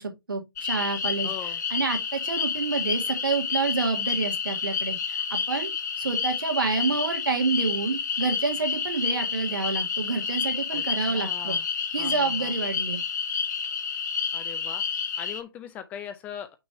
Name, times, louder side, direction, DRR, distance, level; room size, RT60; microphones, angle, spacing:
voice 1, 0.0-1.3 1.7-5.7 6.0-11.6 11.9-13.0, right 4 dB, 70° right, 2.0 m, -28 dB
sound 1, 0.6-15.4, left 6 dB, 50° left, 1.2 m, -29 dB
voice 2, 1.2-1.6 10.7-10.8 11.1-11.7 12.0-12.6 14.3-14.8 15.2-16.6, left 9 dB, 15° left, 0.4 m, -40 dB
5.9 x 3.1 x 5.3 m
figure-of-eight pair, 135°, 12 cm